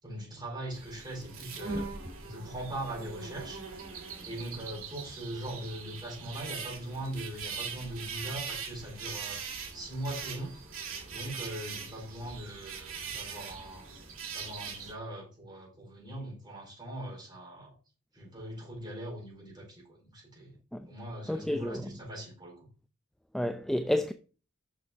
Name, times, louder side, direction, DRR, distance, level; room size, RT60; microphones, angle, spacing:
voice 1, 0.0-1.9 2.2-3.6 4.2-9.4 9.7-10.6 11.1-13.9 14.3-17.7 18.1-20.6 20.9-22.7, right 1 dB, 20° right, 4.6 m, -41 dB
Bees and birds, 0.7-14.9, right 5 dB, 70° right, 2.4 m, -41 dB
voice 2, 21.3-21.8 23.3-24.1, left 1 dB, ahead, 0.3 m, -30 dB
6.5 x 6.1 x 4.5 m
head